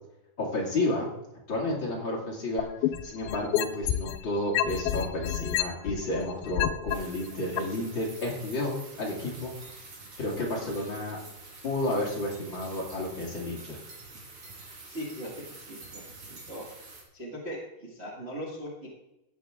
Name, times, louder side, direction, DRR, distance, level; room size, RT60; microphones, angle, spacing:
voice 1, 0.4-1.1 1.5-2.7 3.0-9.5 10.2-11.2 11.6-13.8, left 1 dB, 35° left, -5 dB, 2.4 m, -31 dB
sound 1, 2.6-4.2 4.6-7.0 7.6-7.7, left 13 dB, 80° left, 2.8 m, -28 dB
sound 2, 6.9-17.0, right 3 dB, 40° right, 2.2 m, -47 dB
voice 2, 14.8-16.6 17.1-18.9, equal, 80° right, -3 dB, 0.5 m, -40 dB
16.0 x 7.9 x 3.7 m, 0.92 s
omnidirectional pair, 5.1 m